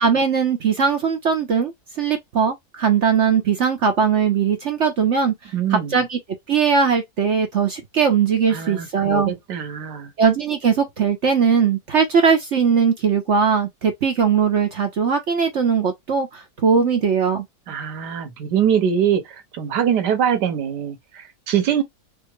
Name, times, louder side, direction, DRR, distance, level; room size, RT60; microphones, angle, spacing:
voice 1, 0.0-6.2 6.5-9.3 10.2-17.4, right 6 dB, 50° right, 1.0 m, -20 dB
voice 2, 5.5-6.0 8.5-10.1 17.7-21.8, right 8 dB, 90° right, 1.7 m, -23 dB
4.4 x 2.1 x 3.1 m
omnidirectional pair, 1.8 m